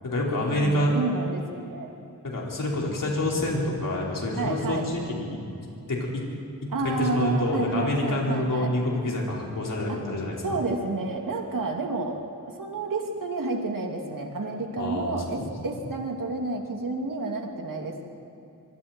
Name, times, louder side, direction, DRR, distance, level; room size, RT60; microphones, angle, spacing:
voice 1, 0.0-0.9 2.2-5.3 5.9-6.2 6.6-10.4 14.8-15.5, left 1 dB, 60° left, -3 dB, 5.1 m, -27 dB
voice 2, 0.6-1.9 4.4-4.9 6.7-8.7 9.9-10.0 10.4-12.2 12.5-18.0, right 3 dB, 65° right, 1 dB, 2.9 m, -30 dB
25.0 x 23.5 x 4.6 m, 2.7 s
wide cardioid pair, 95°, 35 cm